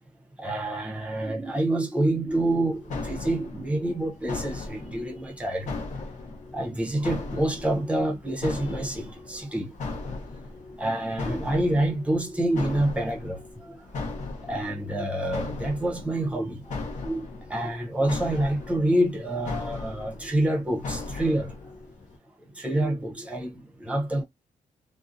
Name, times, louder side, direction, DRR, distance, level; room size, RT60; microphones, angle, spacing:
voice 1, 0.4-5.7 6.5-9.7 10.0-10.2 10.8-13.9 14.4-21.7 22.5-24.2, right 1 dB, 10° right, 0.6 m, -27 dB
sound 1, 2.3-22.2, left 3 dB, 65° left, 0.7 m, -38 dB
2.5 x 2.0 x 2.5 m
wide cardioid pair, 175°, 14 cm